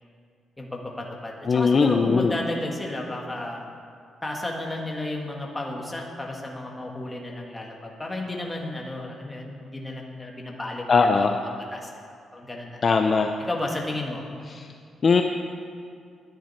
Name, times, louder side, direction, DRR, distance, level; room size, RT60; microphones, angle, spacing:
voice 1, 0.6-3.7 4.2-11.3 11.7-12.8 13.4-14.2, left 1 dB, 10° left, -1 dB, 2.1 m, -33 dB
voice 2, 1.5-2.3 10.9-11.3 12.8-13.3 14.5-14.6 15.0-15.2, left 5 dB, 35° left, 5 dB, 0.6 m, -19 dB
20.5 x 10.5 x 4.4 m, 2.3 s
cardioid pair, 140°, 0 cm